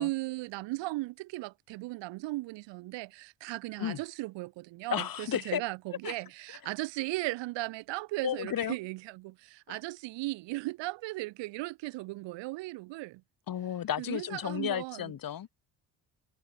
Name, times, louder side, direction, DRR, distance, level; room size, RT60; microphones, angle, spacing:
voice 1, 0.0-13.2 14.0-15.1, right 20 dB, 85° right, 6.0 m, -37 dB
voice 2, 4.9-5.6 6.0-6.1 8.2-8.8 9.7-9.8 13.5-15.5, left 10 dB, 55° left, 2.8 m, -33 dB
supercardioid pair, 85°, 42 cm